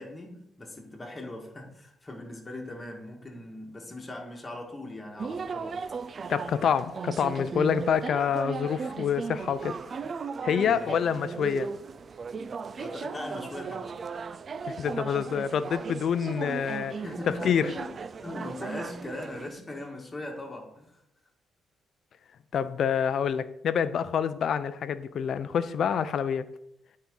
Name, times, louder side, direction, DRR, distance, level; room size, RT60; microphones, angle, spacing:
voice 1, 0.0-5.8 10.4-11.1 12.8-14.0 17.0-17.9 18.2-21.0, left 1 dB, 20° left, 1.7 m, -40 dB
sound 1, 5.2-19.5, right 5 dB, 45° right, 0.3 m, -36 dB
voice 2, 6.3-9.8 10.4-11.7 14.7-16.9 17.3-17.7 22.5-26.5, left 7 dB, 60° left, 0.5 m, -27 dB
9.3 x 4.2 x 3.9 m
cardioid pair, 90°, 0 cm